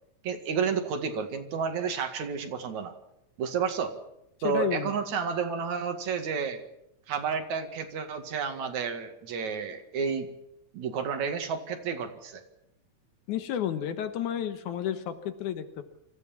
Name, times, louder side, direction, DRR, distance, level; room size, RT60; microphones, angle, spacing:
voice 1, 0.2-2.9 3.4-3.9 4.4-6.6 7.1-10.3 10.7-12.4, right 6 dB, 70° right, 6 dB, 3.4 m, -31 dB
voice 2, 4.4-5.0 13.3-15.8, left 9 dB, 80° left, 10 dB, 2.7 m, -31 dB
24.5 x 15.0 x 7.3 m, 0.83 s
omnidirectional pair, 3.5 m